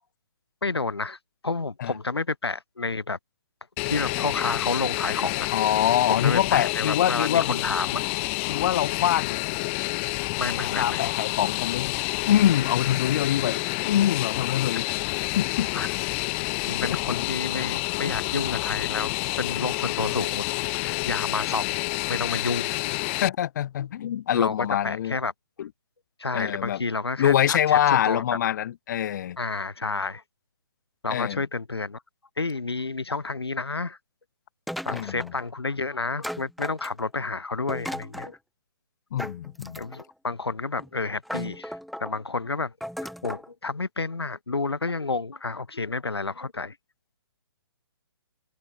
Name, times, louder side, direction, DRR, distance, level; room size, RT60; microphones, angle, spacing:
voice 1, 0.6-3.2 3.8-5.5 6.1-8.0 10.4-11.1 14.7-14.9 15.7-15.9 16.6-20.5 20.7-21.8 22.1-23.0 23.8-23.9 24.3-25.3 26.2-28.2 29.4-30.2 31.0-32.0 32.4-34.0 34.8-38.4 39.8-42.7 43.0-46.8, left 3 dB, 90° left, 4.7 m, -30 dB
Fixed-wing aircraft airplane, 3.8-23.3, left 28 dB, 30° left, 3.2 m, -29 dB
voice 2, 5.5-7.6 8.5-9.4 10.8-11.9 12.3-14.8 15.3-15.7 16.9-17.2 23.2-25.1 25.6-25.7 26.3-26.8 27.2-29.4 31.1-31.4 34.9-35.3 39.1-39.8, left 11 dB, 45° left, 2.6 m, -24 dB
sound 1, 34.7-35.5 36.2-37.2 37.7-38.3 39.2-40.1 40.8-40.9 41.2-42.1 42.8-43.5, equal, ahead, 4.2 m, -36 dB
open air
hypercardioid pair, 140°, 13 cm